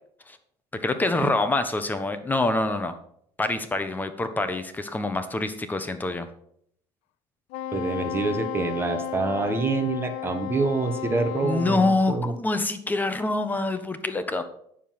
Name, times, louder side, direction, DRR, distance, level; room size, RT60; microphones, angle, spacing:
voice 1, 0.7-2.9 3.4-6.3 11.4-14.4, left 2 dB, 15° left, 9 dB, 1.2 m, -26 dB
Wind instrument woodwind instrument, 7.5-12.0, left 11 dB, 85° left, 0.6 m, -33 dB
voice 2, 7.7-12.3, right 3 dB, 20° right, 5 dB, 1.5 m, -26 dB
9.3 x 7.1 x 6.0 m, 0.68 s
cardioid pair, 110°, 12 cm